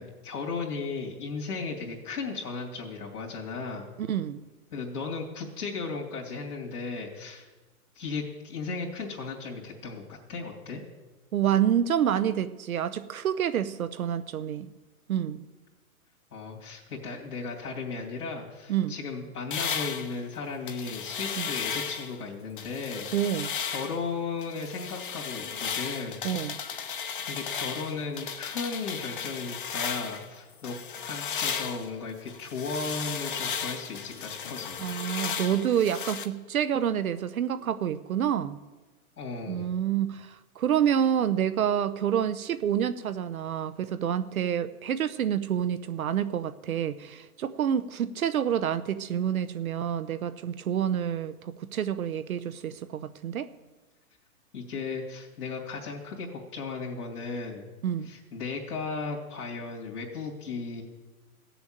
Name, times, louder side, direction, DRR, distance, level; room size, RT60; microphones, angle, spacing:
voice 1, 0.0-3.9 4.7-7.5 7.9-10.8 16.3-23.1 23.6-26.8 27.2-30.8 31.0-34.8 39.2-39.7 54.5-57.7 58.0-60.8, left 4 dB, 80° left, -2 dB, 2.9 m, -36 dB
voice 2, 4.0-4.4 11.3-14.7 15.1-15.4 18.7-18.9 21.4-21.5 23.1-23.5 26.2-26.6 34.8-38.6 39.5-53.5 57.8-58.1, right 9 dB, 65° right, 12 dB, 0.8 m, -28 dB
sound 1, 19.5-22.2 22.6-24.0 24.4-30.3 30.6-36.3, left 7 dB, 35° left, 0.8 m, -35 dB
16.0 x 7.0 x 9.0 m, 1.2 s
hypercardioid pair, 180°, 45 cm